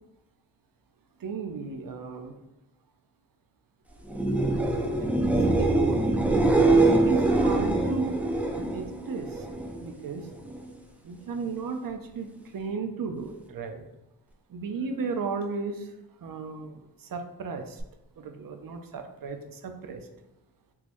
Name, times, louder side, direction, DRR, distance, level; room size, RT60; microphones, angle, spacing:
voice 1, 1.2-2.4 5.0-5.1 5.6-8.2 8.7-9.5 9.8-10.3 11.0-13.8 14.5-15.9 16.2-17.8 18.2-20.1, right 4 dB, 65° right, 6 dB, 0.5 m, -35 dB
sound 1, 4.0-9.8 10.2-10.7 17.8-17.9, right 2 dB, 5° right, 0.4 m, -24 dB
3.6 x 3.0 x 2.5 m, 0.93 s
wide cardioid pair, 70°, 37 cm